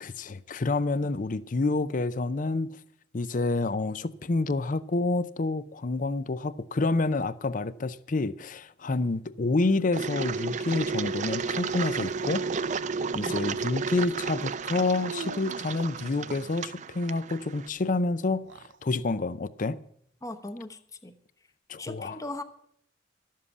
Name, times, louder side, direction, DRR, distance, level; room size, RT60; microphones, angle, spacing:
voice 1, 0.0-2.8 3.1-12.5 13.1-19.8 21.7-22.2, left 3 dB, 45° left, 0.6 m, -28 dB
Engine, 9.9-17.7, right 5 dB, 40° right, 0.5 m, -32 dB
sound 1, 10.7-13.0 14.9-16.7 18.3-18.8, right 4 dB, 80° right, 0.7 m, -44 dB
voice 2, 20.2-21.2 21.8-22.4, left 1 dB, 20° left, 0.9 m, -38 dB
12.5 x 7.5 x 8.3 m
head